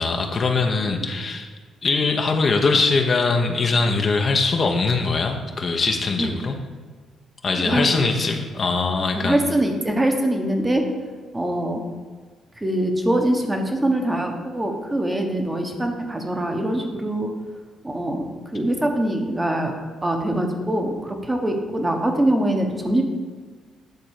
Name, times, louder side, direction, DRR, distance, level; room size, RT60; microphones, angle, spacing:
voice 1, 0.0-1.5 1.8-6.6 7.4-9.4, left 4 dB, 40° left, 3 dB, 1.0 m, -22 dB
voice 2, 7.5-8.0 9.1-10.8 11.3-11.8 12.6-17.3 17.8-19.7 20.0-23.0, right 1 dB, 15° right, 3 dB, 1.3 m, -23 dB
10.5 x 3.9 x 6.6 m, 1.5 s
cardioid pair, 90°, 0 cm